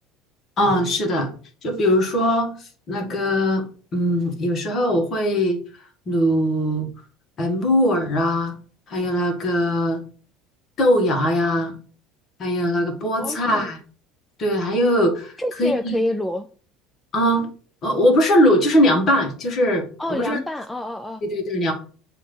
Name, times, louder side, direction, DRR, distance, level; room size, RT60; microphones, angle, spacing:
voice 1, 0.6-1.3 1.6-3.6 3.9-5.6 6.1-6.9 7.4-8.5 8.9-10.0 10.8-11.8 12.4-13.8 14.4-15.3 15.6-16.0 17.1-17.5 17.8-20.4 21.2-21.7, equal, 35° left, 1.6 m, -20 dB
voice 2, 13.2-13.7 15.4-16.5 20.0-21.2, left 1 dB, 5° left, 0.3 m, -27 dB
7.4 x 2.9 x 5.2 m
cardioid pair, 145°, 0 cm